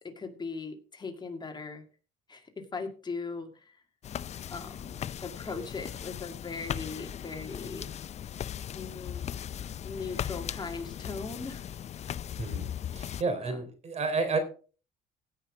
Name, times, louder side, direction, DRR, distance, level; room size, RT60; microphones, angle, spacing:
voice 1, 0.0-1.8 2.3-3.8 4.5-7.9 8.7-9.3 9.8-11.7 13.4-13.6, left 4 dB, 25° left, 5 dB, 2.1 m, -39 dB
sound 1, 4.0-13.2, left 9 dB, 40° left, 0.5 m, -38 dB
voice 2, 12.3-14.4, right 4 dB, 40° right, 8 dB, 3.4 m, -31 dB
16.5 x 5.8 x 4.9 m, 0.38 s
cardioid pair, 110°, 17 cm